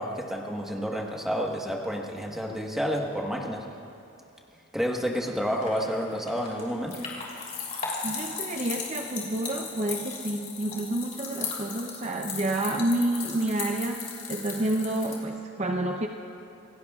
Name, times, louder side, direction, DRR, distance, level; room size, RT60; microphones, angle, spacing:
voice 1, 0.0-3.6 4.7-7.1, equal, ahead, -1 dB, 1.3 m, -30 dB
sound 1, 5.2-15.1, left 5 dB, 40° left, 3.2 m, -37 dB
voice 2, 8.0-16.1, right 1 dB, 35° right, 3 dB, 0.6 m, -29 dB
27.0 x 17.5 x 2.4 m, 2.7 s
head